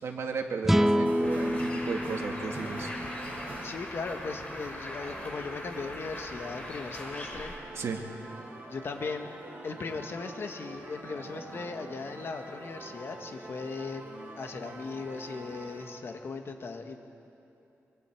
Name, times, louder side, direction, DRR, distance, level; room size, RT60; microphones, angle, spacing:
voice 1, 0.0-2.9 7.8-8.0, right 5 dB, 65° right, 2 dB, 2.0 m, -35 dB
sound 1, 0.6-4.0, equal, 5° right, 0.6 m, -28 dB
sound 2, 0.9-15.9, right 2 dB, 40° right, 5.1 m, -45 dB
Bird, 1.2-7.6, left 1 dB, 25° left, 3.8 m, -41 dB
voice 2, 3.6-7.5 8.7-9.3 9.6-14.0 14.4-17.0, left 4 dB, 50° left, 5 dB, 1.6 m, -38 dB
24.5 x 24.5 x 4.6 m, 2.8 s
cardioid pair, 100°, 5 cm